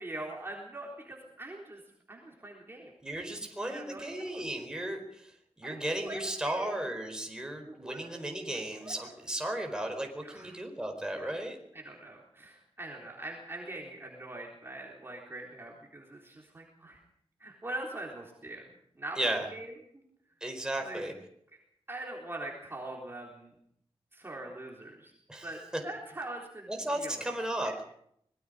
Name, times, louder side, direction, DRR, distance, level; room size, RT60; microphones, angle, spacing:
voice 1, 0.0-1.8 2.1-2.9 3.6-4.4 5.6-6.7 7.7-8.1 8.8-8.9 10.2-10.6 11.2-11.4 11.7-17.0 17.4-18.7 19.0-20.0 20.8-21.0 21.9-23.5 24.1-25.1 25.4-25.6 25.8-27.3 27.6-27.8, right 2 dB, 20° right, -1 dB, 3.8 m, -42 dB
voice 2, 3.0-5.3 5.6-11.6 19.2-19.5 20.4-21.1 25.3-25.8 26.7-27.8, right 1 dB, 5° right, 2 dB, 4.6 m, -35 dB
25.0 x 21.0 x 5.1 m, 0.69 s
wide cardioid pair, 150°, 10 cm